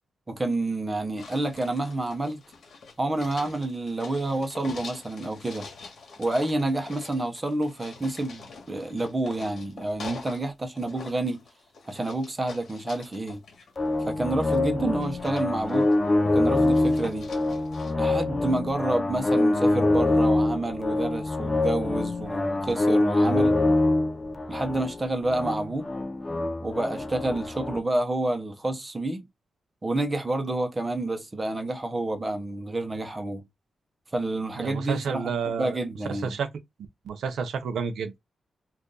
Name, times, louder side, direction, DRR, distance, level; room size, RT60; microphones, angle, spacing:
voice 1, 0.3-2.4 3.0-5.7 6.2-11.4 11.9-13.4 14.0-15.9 16.3-17.3 18.0-23.6 24.5-25.9 26.6-29.2 29.8-33.4 34.1-36.4, right 2 dB, 25° right, 0.8 m, -29 dB
sound 1, 1.2-10.5 10.7-14.6 15.0-16.1 16.5-17.9, left 4 dB, 70° left, 1.3 m, -45 dB
sound 2, 13.8-27.8, left 2 dB, 25° left, 0.5 m, -25 dB
voice 2, 34.6-35.8 36.1-36.5 37.0-38.2, right 6 dB, 85° right, 0.6 m, -30 dB
2.6 x 2.5 x 3.7 m
cardioid pair, 95°, 0 cm